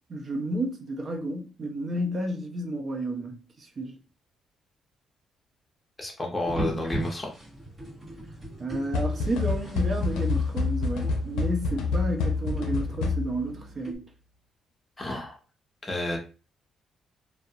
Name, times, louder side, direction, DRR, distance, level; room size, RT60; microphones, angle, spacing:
voice 1, 0.1-4.0 8.6-14.0, right 1 dB, 45° right, 0.6 m, -31 dB
voice 2, 6.0-7.3 15.0-15.4 15.8-16.2, left 1 dB, 20° left, 0.8 m, -31 dB
sound 1, 6.5-14.0, right 1 dB, 25° right, 1.1 m, -39 dB
sound 2, 8.9-13.5, left 4 dB, 90° left, 0.5 m, -27 dB
2.4 x 2.0 x 2.6 m
cardioid pair, 90°, 0 cm